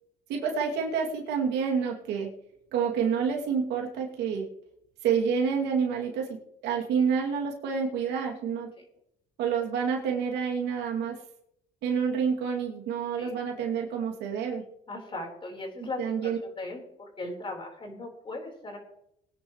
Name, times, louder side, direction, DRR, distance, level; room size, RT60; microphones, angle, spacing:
voice 1, 0.3-2.3 2.7-4.5 5.0-6.4 6.6-8.7 9.4-11.2 11.8-14.6 15.8-16.4, right 6 dB, 85° right, 0 dB, 2.8 m, -28 dB
voice 2, 14.9-18.8, left 2 dB, 30° left, 1 dB, 4.4 m, -38 dB
22.0 x 10.0 x 3.2 m, 0.78 s
cardioid pair, 110°, 17 cm